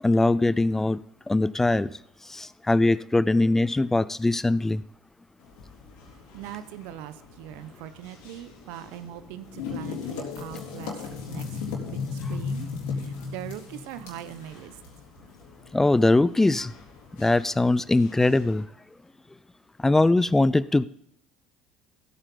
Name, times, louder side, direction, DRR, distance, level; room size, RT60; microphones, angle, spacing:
voice 1, 0.0-1.0 1.3-1.9 2.3-4.8 15.7-16.7 17.2-18.6 19.8-20.9, left 2 dB, 10° left, 0.4 m, -21 dB
sound 1, 5.4-18.6, left 5 dB, 70° left, 3.7 m, -38 dB
voice 2, 6.3-11.6 11.9-14.8, right 11 dB, 70° right, 0.9 m, -41 dB
15.5 x 8.9 x 3.9 m
hypercardioid pair, 70°, 3 cm